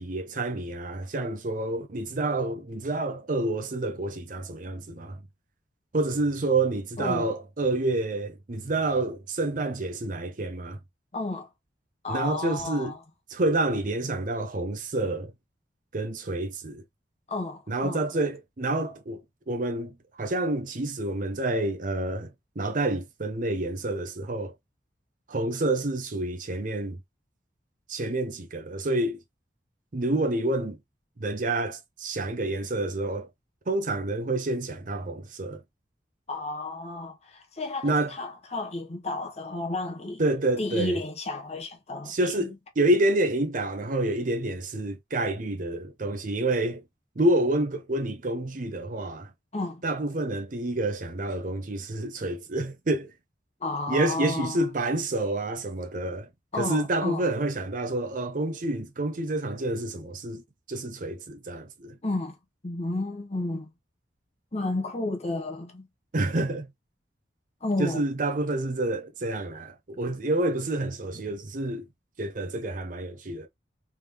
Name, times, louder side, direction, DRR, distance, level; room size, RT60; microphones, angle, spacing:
voice 1, 0.0-5.2 5.9-10.8 12.1-12.9 13.3-15.3 15.9-16.8 17.7-19.2 19.5-24.5 25.3-27.0 27.9-29.2 29.9-30.8 31.2-33.3 33.7-35.6 37.8-38.1 40.2-41.0 42.1-46.8 47.2-49.3 49.8-53.1 53.9-56.3 56.6-60.4 60.7-62.0 66.1-66.7 67.8-71.8 72.2-73.5, right 2 dB, 45° right, 0.7 m, -28 dB
voice 2, 7.0-7.3 11.1-11.5 12.0-13.0 17.3-18.0 36.3-40.2 40.6-42.5 49.5-49.8 53.6-54.6 56.5-57.3 62.0-62.4 62.6-63.7 64.5-65.9 67.6-68.0, left 2 dB, 35° left, 0.9 m, -32 dB
3.5 x 3.4 x 2.9 m
head